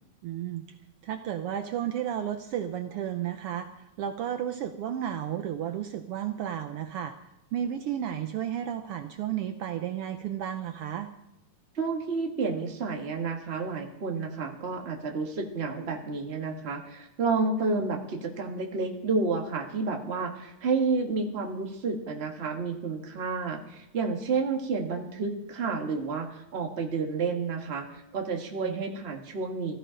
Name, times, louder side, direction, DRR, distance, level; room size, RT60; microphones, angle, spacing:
voice 1, 0.2-0.6 1.0-3.7 4.0-7.1 7.5-11.1 28.6-28.8, right 10 dB, 90° right, 8 dB, 1.2 m, -32 dB
voice 2, 11.7-29.8, right 4 dB, 30° right, 2 dB, 1.1 m, -30 dB
16.0 x 13.5 x 5.1 m, 0.87 s
omnidirectional pair, 3.5 m